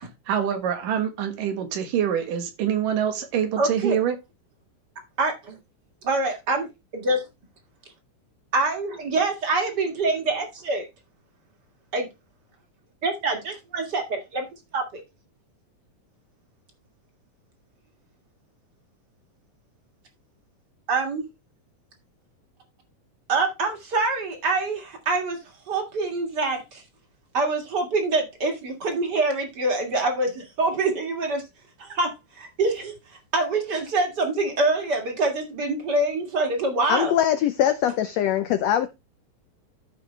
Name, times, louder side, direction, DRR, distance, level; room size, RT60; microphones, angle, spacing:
voice 1, 0.3-4.2, right 9 dB, 80° right, 3.1 m, -25 dB
voice 2, 3.6-4.0 5.2-5.5 6.0-6.7 6.9-7.2 8.5-10.9 11.9-12.1 13.0-14.5 14.7-15.0 20.9-21.2 23.3-25.4 25.7-26.8 27.3-31.4 31.8-32.9 33.3-37.1, right 3 dB, 35° right, 2.0 m, -25 dB
voice 3, 36.9-38.9, left 10 dB, 80° left, 1.5 m, -22 dB
13.5 x 5.3 x 3.2 m
omnidirectional pair, 3.7 m